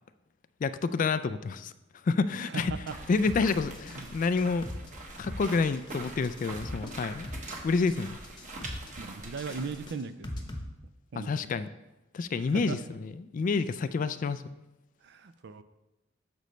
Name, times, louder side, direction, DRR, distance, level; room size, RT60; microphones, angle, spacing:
voice 1, 0.6-1.7 2.0-2.7 3.1-4.6 5.2-7.3 7.6-8.2 11.2-11.7 12.1-14.6, left 4 dB, 40° left, 13 dB, 0.3 m, -28 dB
voice 2, 2.4-2.9 4.0-4.1 9.0-10.3 11.1-11.4 12.5-12.8 15.0-15.6, right 4 dB, 60° right, 12 dB, 0.5 m, -37 dB
sound 1, 2.6-2.9 3.2-4.0 4.2-4.9 5.2-5.9 6.2-6.9 7.2-8.9 9.2-10.6, left 1 dB, 20° left, 0.9 m, -40 dB
sound 2, 2.9-9.9, right 2 dB, 40° right, 1.2 m, -43 dB
13.0 x 5.2 x 3.2 m, 1.0 s
head